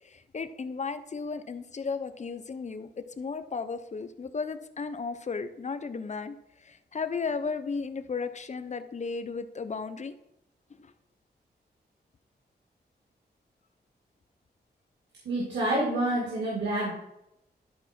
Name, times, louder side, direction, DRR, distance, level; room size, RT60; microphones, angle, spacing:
voice 1, 0.0-10.1 10.8-10.9, left 5 dB, 40° left, 10 dB, 0.7 m, -35 dB
voice 2, 15.3-16.9, right 1 dB, 90° right, -4 dB, 2.2 m, -28 dB
12.0 x 4.7 x 4.4 m, 0.84 s
wide cardioid pair, 90°, 18 cm